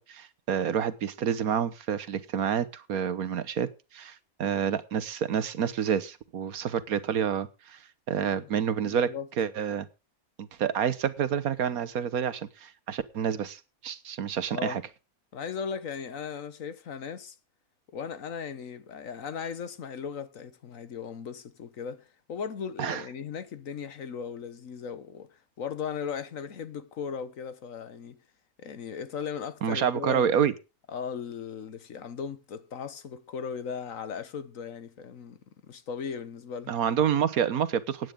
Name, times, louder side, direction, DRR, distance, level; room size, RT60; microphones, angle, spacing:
voice 1, 0.0-7.8 8.1-9.1 9.4-9.9 10.4-14.8 22.8-23.0 29.6-30.5 36.7-38.1, right 8 dB, 75° right, 1.5 m, -28 dB
voice 2, 8.2-8.5 8.8-9.3 14.5-14.8 15.3-17.4 17.9-28.2 28.6-30.4 30.9-35.4 35.7-36.7, left 6 dB, 65° left, 1.4 m, -37 dB
16.0 x 9.5 x 3.7 m
omnidirectional pair, 1.5 m